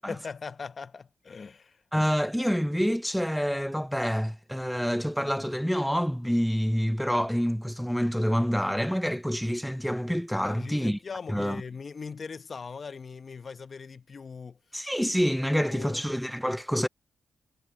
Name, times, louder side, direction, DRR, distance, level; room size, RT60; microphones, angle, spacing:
voice 1, 0.0-1.8 10.4-14.6 15.5-16.0, left 5 dB, 50° left, 1.0 m, -40 dB
voice 2, 1.9-11.0 11.3-11.6 14.7-16.9, equal, ahead, 0.4 m, -27 dB
supercardioid pair, 55°, 0 cm